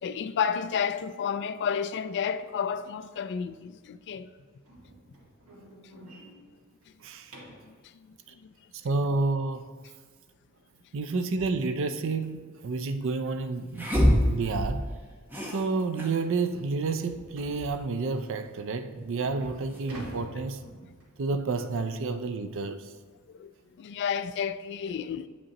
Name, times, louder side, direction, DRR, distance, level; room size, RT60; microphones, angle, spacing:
voice 1, 0.0-4.3 5.8-6.0 7.6-8.1 8.4-8.5 23.3-23.5 23.8-25.3, left 7 dB, 50° left, 0.3 m, -31 dB
sound 1, 4.6-7.7 10.6-10.7 11.1-11.3 11.7-11.8 12.3-12.4 13.5-13.6 14.0-14.1 14.8-14.9 15.2-15.3 15.8-15.9 17.4-17.7 18.4-18.5 19.0-21.3, right 1 dB, 85° right, 1.7 m, -46 dB
voice 2, 7.0-7.3 8.8-9.7 10.9-13.9 14.3-14.9 15.5-20.6 21.2-22.9, right 3 dB, 60° right, 0.5 m, -30 dB
sound 2, 12.2-12.3 13.7-15.0 15.3-16.2 16.5-16.6 16.8-18.1 19.4-20.2, equal, 10° right, 0.9 m, -27 dB
8.2 x 5.2 x 2.9 m
head